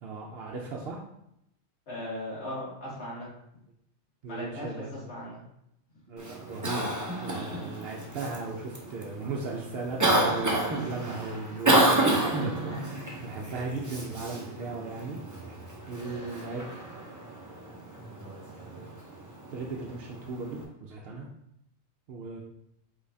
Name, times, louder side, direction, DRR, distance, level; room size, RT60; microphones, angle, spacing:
voice 1, 0.0-1.0 4.2-4.9 6.1-12.7 13.2-15.2 15.9-16.6 19.5-21.3 22.1-22.4, right 3 dB, 60° right, -2 dB, 0.7 m, -37 dB
voice 2, 1.9-3.3 4.3-5.4 12.7-13.0, left 1 dB, 60° left, -8 dB, 2.0 m, -38 dB
Cough, 6.2-20.6, right 1 dB, 20° right, 0.5 m, -30 dB
5.1 x 3.9 x 2.7 m, 0.79 s
omnidirectional pair, 1.3 m